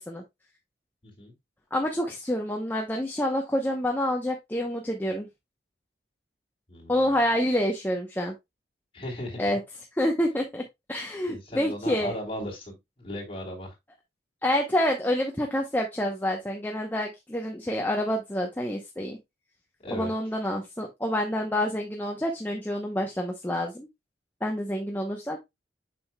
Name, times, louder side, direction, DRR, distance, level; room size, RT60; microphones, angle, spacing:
voice 1, 1.0-1.3 6.7-7.2 8.9-9.5 11.3-13.7 19.8-20.1, left 1 dB, 30° left, 3.0 m, -37 dB
voice 2, 1.7-5.3 6.9-8.3 9.4-9.6 9.9-12.1 14.4-19.2 19.9-23.9 24.4-25.4, left 1 dB, 10° left, 0.7 m, -28 dB
7.5 x 5.8 x 2.2 m
head